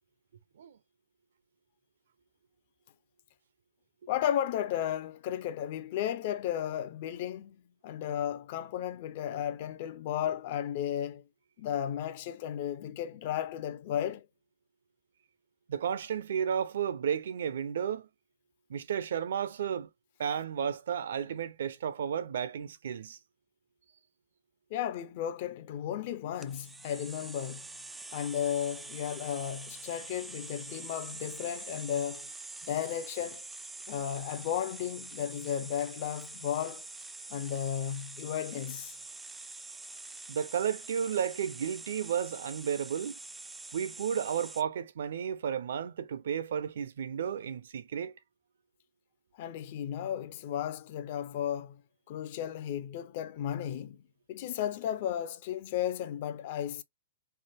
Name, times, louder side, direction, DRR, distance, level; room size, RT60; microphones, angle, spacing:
voice 1, 4.1-11.2 11.6-14.3 24.7-27.7 28.1-32.3 32.6-33.4 33.9-36.8 37.3-38.9 49.4-51.8 52.1-54.0 54.3-56.8, left 10 dB, 45° left, 0.5 m, -34 dB
voice 2, 15.7-18.1 18.7-19.9 20.2-23.2 40.3-43.2 43.7-48.2, right 8 dB, 70° right, 0.6 m, -33 dB
sound 1, 26.4-44.6, right 3 dB, 5° right, 0.3 m, -45 dB
3.3 x 2.1 x 2.8 m
hypercardioid pair, 145°, 0 cm